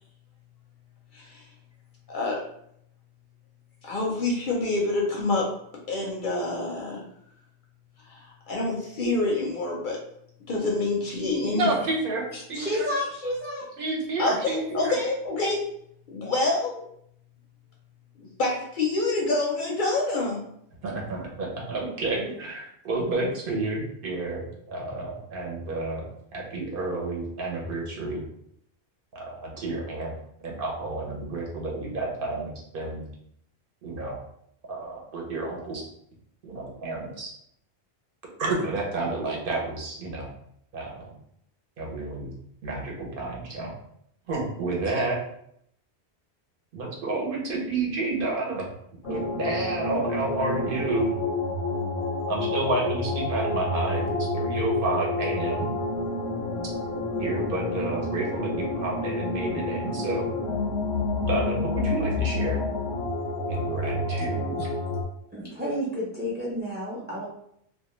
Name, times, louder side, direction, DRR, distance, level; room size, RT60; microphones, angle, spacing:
voice 1, 2.1-2.4 3.8-5.5 5.9-7.0 8.1-10.0 10.5-11.7 14.2-15.6 16.1-16.8 18.2-20.4, left 2 dB, 60° left, -2 dB, 0.6 m, -27 dB
voice 2, 11.5-12.9 13.8-15.0 20.8-26.0 26.3-28.2 29.1-30.1 30.4-33.0 33.8-34.2 34.7-35.8 36.4-37.3 38.4-40.3 40.7-41.1 41.8-42.3 42.6-43.7 44.3-45.2 46.7-48.7 49.0-51.1 52.3-55.7 57.2-60.3 61.2-62.6 63.5-64.7, right 3 dB, 60° right, -2 dB, 0.7 m, -30 dB
voice 3, 12.3-13.7 64.6-64.7 65.3-67.3, left 1 dB, 15° right, -6 dB, 0.3 m, -31 dB
sound 1, 49.0-65.0, left 2 dB, 90° left, 0.9 m, -29 dB
2.2 x 2.2 x 2.9 m, 0.71 s
omnidirectional pair, 1.1 m